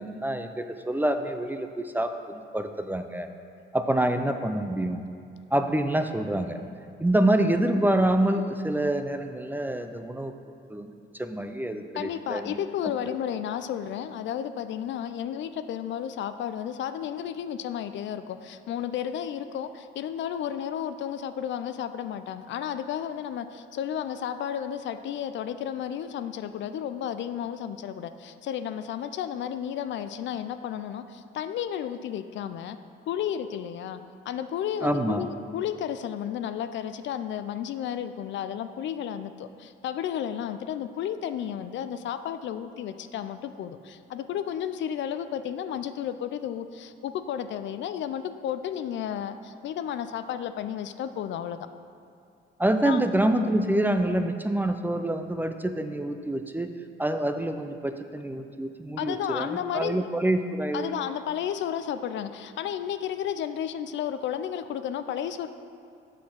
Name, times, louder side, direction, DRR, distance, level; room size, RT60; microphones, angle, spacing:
voice 1, 0.0-3.3 3.7-5.0 5.5-6.6 7.0-10.3 10.7-10.9 11.2-12.6 13.1-13.2 34.8-35.3 52.6-56.7 57.0-61.0, right 1 dB, 10° right, 7 dB, 0.4 m, -26 dB
voice 2, 11.9-32.8 33.1-34.0 34.3-51.7 52.8-53.0 59.0-60.0 60.7-65.5, left 9 dB, 70° left, 11 dB, 0.4 m, -32 dB
6.4 x 5.7 x 5.9 m, 2.4 s
cardioid pair, 90°, 20 cm